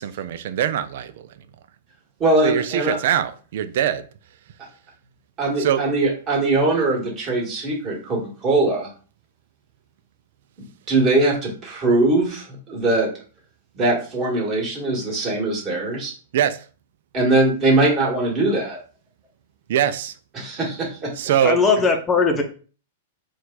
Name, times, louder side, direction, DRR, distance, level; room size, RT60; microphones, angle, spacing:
voice 1, 0.0-1.4 2.4-4.0 5.6-5.8 16.3-16.6 19.7-20.1 21.2-21.6, right 10 dB, 65° right, 0.4 m, -22 dB
voice 2, 2.2-3.0 5.4-8.9 10.9-13.1 13.7-16.1 17.1-18.8 20.4-21.1, right 2 dB, 30° right, 2.0 m, -21 dB
voice 3, 21.4-22.4, left 4 dB, 20° left, 0.7 m, -18 dB
4.6 x 2.4 x 3.9 m
hypercardioid pair, 130°, 0 cm